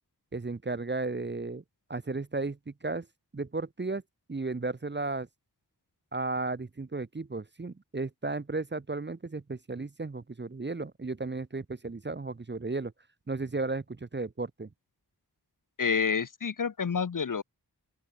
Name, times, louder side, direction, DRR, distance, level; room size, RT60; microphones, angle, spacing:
voice 1, 0.3-1.6 1.9-3.1 3.3-4.0 4.3-5.3 6.1-12.9 13.3-14.7, right 3 dB, 25° right, 0.7 m, -34 dB
voice 2, 15.8-17.4, left 6 dB, 50° left, 0.7 m, -28 dB
open air
wide cardioid pair, 65°, 40 cm